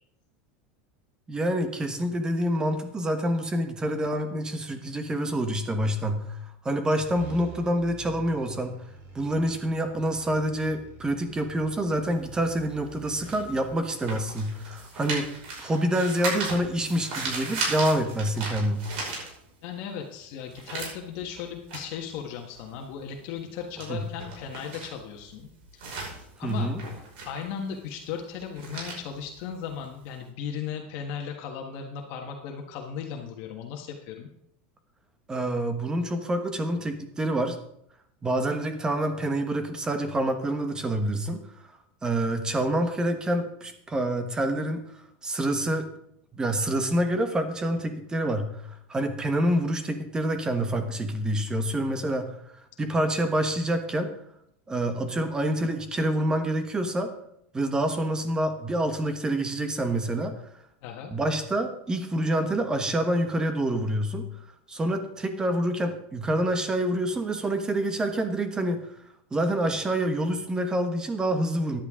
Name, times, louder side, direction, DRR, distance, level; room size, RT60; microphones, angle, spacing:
voice 1, 1.3-6.4 6.6-8.7 9.1-15.3 15.6-18.8 23.9-24.0 26.4-26.8 35.3-37.6 38.2-41.4 42.0-44.8 45.2-45.9 46.3-52.3 52.8-54.1 54.7-57.1 57.5-60.3 61.1-64.2 64.7-68.9 69.3-71.8, right 1 dB, 10° right, 7 dB, 1.2 m, -27 dB
sound 1, 7.0-13.8, right 5 dB, 40° right, 4.6 m, -47 dB
sound 2, 12.0-19.8 20.1-30.2, right 3 dB, 70° right, 5.5 m, -37 dB
voice 2, 19.6-25.9 26.4-26.7 27.2-34.3 60.8-61.1, left 7 dB, 55° left, 2 dB, 1.5 m, -36 dB
13.5 x 10.5 x 3.7 m, 0.76 s
supercardioid pair, 150°, 6 cm